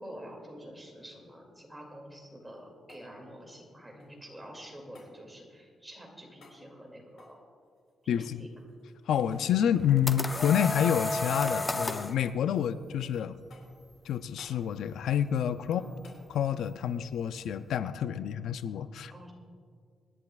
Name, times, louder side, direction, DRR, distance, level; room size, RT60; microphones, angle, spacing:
voice 1, 0.0-7.4 8.0-8.5 15.7-16.0 19.1-19.3, equal, 10° right, -1 dB, 2.5 m, -47 dB
sound 1, 2.3-4.3 4.9-5.1 6.4-6.6 7.1-9.1 9.3-9.5 9.7-10.0 10.3-11.2 11.5-12.1 12.6-13.1 13.5-13.9 14.4-14.6 16.0-16.2 18.6-18.7, left 3 dB, 70° left, 3.9 m, -59 dB
voice 2, 8.1-8.5 9.1-13.4 14.0-15.8 16.3-19.1, left 9 dB, 90° left, 12 dB, 0.4 m, -28 dB
sound 2, 9.6-12.2, left 2 dB, 20° left, 0.6 m, -32 dB
25.0 x 11.0 x 2.4 m, 2.1 s
wide cardioid pair, 140°, 0 cm